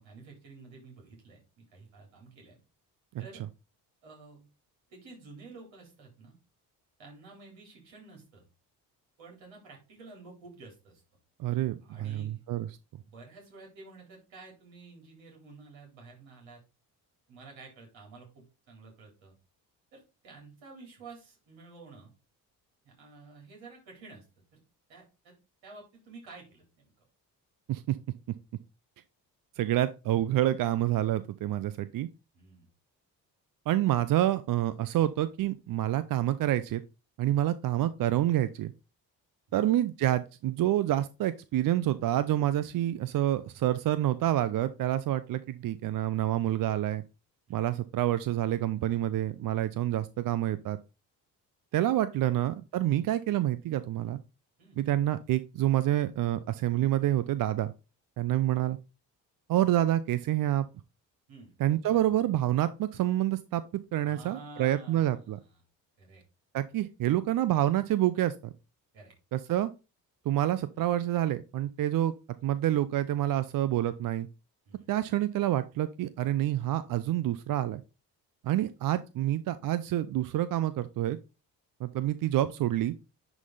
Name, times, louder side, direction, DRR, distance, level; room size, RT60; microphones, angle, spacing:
voice 1, 0.0-2.6 3.2-3.4 4.0-4.5 4.9-6.4 7.0-8.4 9.2-11.0 11.8-12.4 12.9-16.6 17.3-19.3 19.9-22.1 22.8-24.3 24.5-24.6 24.9-25.3 25.6-26.9 32.3-32.7 39.5-39.7 47.5-47.6 54.6-54.8 61.3-61.5 61.9-62.0 64.0-65.6 66.0-66.2 68.9-69.1 74.7-74.9 78.4-78.6, right 3 dB, 65° right, 0 dB, 3.9 m, -51 dB
voice 2, 11.4-12.7 27.7-28.0 29.6-32.1 33.7-36.8 37.2-38.7 39.5-47.0 47.5-50.8 51.7-54.2 54.8-57.7 58.2-58.8 59.5-60.7 61.6-63.6 63.9-65.4 66.5-68.5 69.3-69.7 70.3-72.1 72.4-74.3 74.9-77.8 78.4-81.2 81.8-82.9, right 13 dB, 45° right, 15 dB, 0.6 m, -28 dB
10.5 x 3.9 x 3.9 m, 0.29 s
hypercardioid pair, 45°, 50 cm